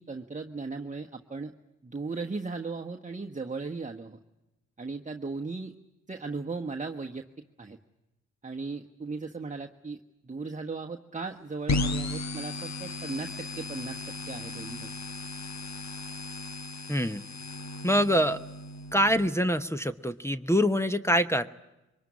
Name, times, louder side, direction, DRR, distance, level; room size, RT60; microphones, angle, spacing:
voice 1, 0.0-1.5 1.8-4.2 4.8-5.7 6.1-7.2 7.6-7.8 8.4-14.9, right 4 dB, 25° right, 3 dB, 1.2 m, -37 dB
sound 1, 11.7-19.3, left 2 dB, 60° left, 1.2 m, -35 dB
voice 2, 16.9-17.2 17.8-18.4 18.9-21.5, equal, 10° left, 6 dB, 1.0 m, -25 dB
23.5 x 20.0 x 9.7 m, 0.99 s
supercardioid pair, 45°, 31 cm